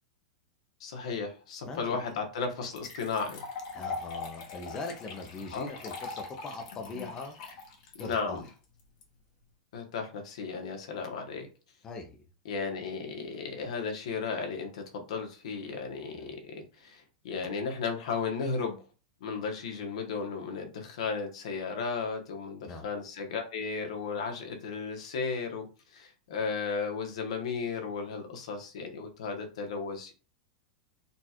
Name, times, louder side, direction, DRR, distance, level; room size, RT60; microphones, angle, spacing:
voice 1, 0.8-3.4 5.5-5.7 6.9-7.1 7.9-8.4 9.7-11.5 12.4-18.8 19.2-30.1, left 5 dB, 65° left, 3 dB, 1.2 m, -35 dB
voice 2, 1.6-2.0 3.7-7.3 8.0-8.4 11.8-12.2 16.1-16.3 22.7-22.9, left 3 dB, 15° left, 3 dB, 0.6 m, -41 dB
sound 1, 2.1-2.2 2.7-9.0, left 4 dB, 40° left, 1.3 m, -42 dB
4.2 x 2.4 x 4.3 m, 0.35 s
supercardioid pair, 170°, 4 cm